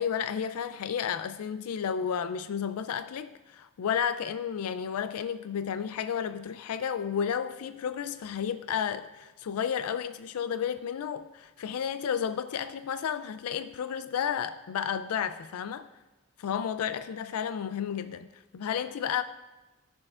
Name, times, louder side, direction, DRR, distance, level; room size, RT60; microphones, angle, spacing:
voice 1, 0.0-15.9 16.4-19.2, left 8 dB, 80° left, 11 dB, 0.4 m, -32 dB
16.5 x 6.4 x 2.4 m, 1.1 s
head